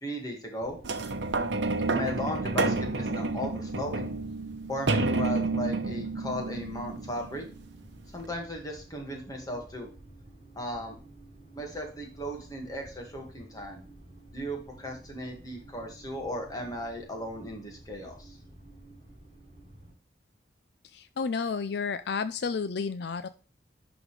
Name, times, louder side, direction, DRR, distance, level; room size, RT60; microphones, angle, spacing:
voice 1, 0.0-0.8 1.9-4.1 4.7-7.4 8.1-9.9 10.6-11.0 11.5-13.9 14.3-18.4, equal, 20° left, 1 dB, 1.9 m, -36 dB
sound 1, 0.6-19.9, right 1 dB, 35° right, 4.4 m, -51 dB
sound 2, 0.8-7.6 8.2-8.3, right 3 dB, 75° right, 0.9 m, -30 dB
voice 2, 20.9-23.3, left 5 dB, 60° left, 12 dB, 0.4 m, -31 dB
11.0 x 4.0 x 3.3 m, 0.36 s
head